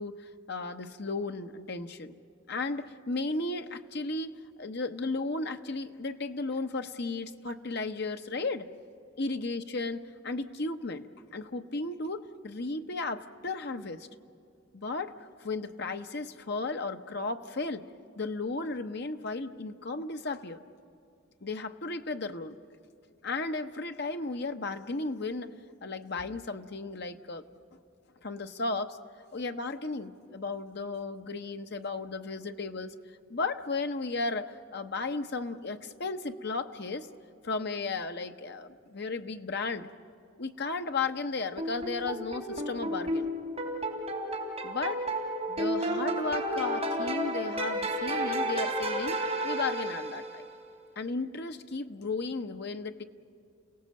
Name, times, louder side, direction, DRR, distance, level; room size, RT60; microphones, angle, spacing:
voice 1, 0.0-2.2 2.5-4.3 4.6-8.7 9.2-11.1 11.3-14.1 14.7-17.8 18.2-20.6 21.4-22.6 23.2-25.5 25.8-27.4 28.2-29.0 29.3-32.9 33.3-37.1 37.4-39.9 40.4-43.3 44.6-45.0 45.5-50.4 51.0-53.0, left 3 dB, 55° left, 7 dB, 0.9 m, -34 dB
sound 1, 41.6-50.5, right 1 dB, 30° right, 3.2 m, -32 dB
29.5 x 17.5 x 7.6 m, 2.5 s
head